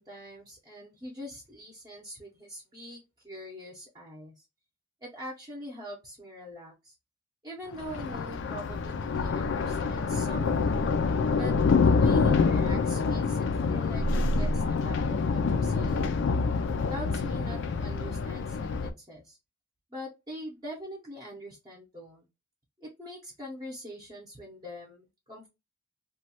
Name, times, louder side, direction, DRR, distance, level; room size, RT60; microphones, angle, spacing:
voice 1, 0.0-4.5 5.0-6.9 7.4-10.7 11.3-11.5 11.8-16.1 16.9-19.4 19.9-22.3 22.8-25.5, equal, 20° right, -3 dB, 0.7 m, -43 dB
Thunder, 7.7-18.9, left 4 dB, 60° left, 0.4 m, -26 dB
3.1 x 2.2 x 2.8 m, 0.25 s
head